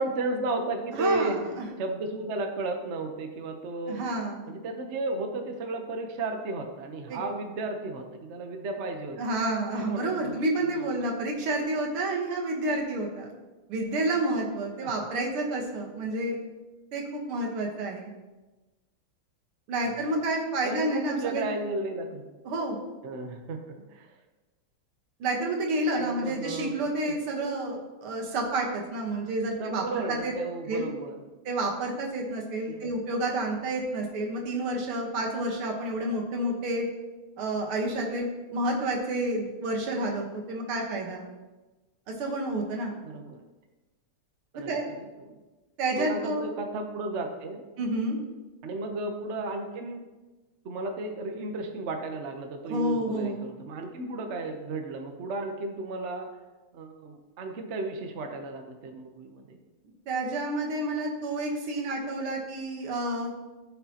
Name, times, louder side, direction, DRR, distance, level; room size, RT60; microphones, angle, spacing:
voice 1, 0.0-1.4 1.8-4.0 4.4-9.2 9.5-9.6 9.9-10.9 14.8-14.9 19.8-20.1 20.6-22.3 23.0-24.2 26.0-26.7 27.0-27.2 29.6-31.2 32.7-32.8 43.0-43.4 44.5-45.4 46.0-47.6 48.6-50.0 50.6-56.3 56.7-59.6, right 2 dB, 50° right, 4 dB, 0.8 m, -34 dB
voice 2, 0.9-1.7 3.9-4.4 7.1-7.2 9.2-13.3 13.7-16.4 16.9-18.1 19.7-21.5 22.5-22.9 25.2-30.3 30.7-30.9 31.5-36.9 37.4-41.2 42.1-43.0 44.7-44.8 45.8-46.5 47.8-48.2 52.7-53.5 60.1-63.3, right 1 dB, 80° right, 1 dB, 2.2 m, -29 dB
13.5 x 5.9 x 2.9 m, 1.2 s
omnidirectional pair, 2.3 m